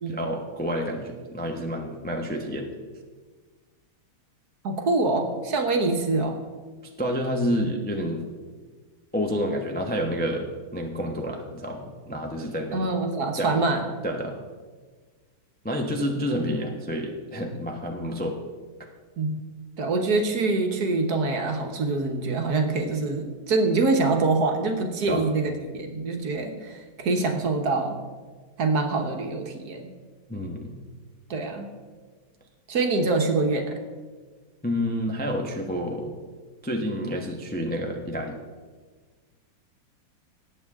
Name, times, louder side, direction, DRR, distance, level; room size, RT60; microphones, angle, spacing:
voice 1, 0.1-2.7 7.0-8.3 9.1-10.5 10.7-12.9 13.4-13.7 14.0-14.3 15.6-18.4 25.1-25.3 30.3-30.8 34.6-36.1 36.6-38.4, equal, 10° left, 1 dB, 0.4 m, -29 dB
voice 2, 4.6-6.4 12.7-13.8 19.2-19.4 19.8-28.0 28.6-29.9 31.3-31.7 32.7-33.7, right 3 dB, 55° right, 4 dB, 1.5 m, -25 dB
18.0 x 8.3 x 3.6 m, 1.4 s
omnidirectional pair, 2.2 m